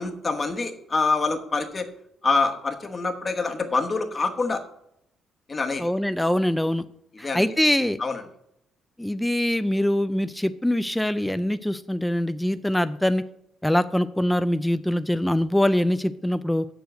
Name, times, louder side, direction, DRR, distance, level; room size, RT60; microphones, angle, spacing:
voice 1, 0.0-1.9 2.2-4.6 5.5-5.9 7.2-7.5 8.0-8.2, left 3 dB, 25° left, 5 dB, 1.0 m, -25 dB
voice 2, 5.8-6.8 7.2-8.0 9.0-13.2 13.6-16.7, left 1 dB, 5° left, 11 dB, 0.3 m, -23 dB
7.0 x 6.6 x 7.6 m, 0.76 s
cardioid pair, 145°, 0 cm